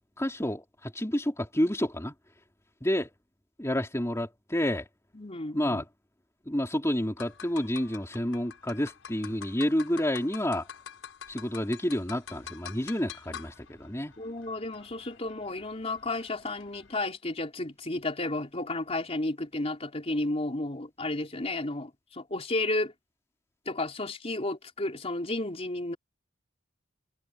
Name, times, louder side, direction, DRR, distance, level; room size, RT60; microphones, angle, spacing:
voice 1, 0.2-2.1 2.8-3.1 3.6-4.9 5.5-5.8 6.5-10.7 11.3-14.1, left 1 dB, 15° left, 3.6 m, -29 dB
voice 2, 5.1-5.8 14.2-22.9 23.7-26.0, left 2 dB, 30° left, 3.8 m, -32 dB
sound 1, 7.2-17.0, left 8 dB, 80° left, 6.3 m, -47 dB
head